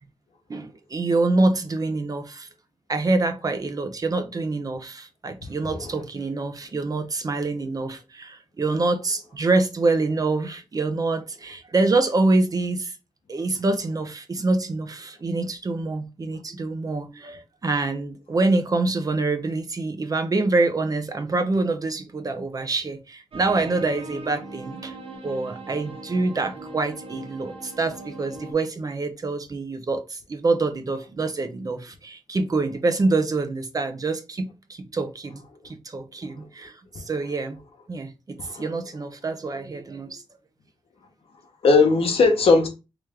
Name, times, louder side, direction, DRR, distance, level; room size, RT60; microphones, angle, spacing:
voice 1, 0.5-2.5 2.9-12.9 13.3-24.9 25.2-37.6 37.9-40.2, right 3 dB, 40° right, 0.6 m, -26 dB
voice 2, 5.7-6.0 38.4-38.6 41.6-42.7, left 4 dB, 80° left, 1.0 m, -19 dB
sound 1, 23.3-28.5, right 2 dB, 75° right, 1.1 m, -40 dB
3.2 x 3.0 x 3.5 m
wide cardioid pair, 115°, 10 cm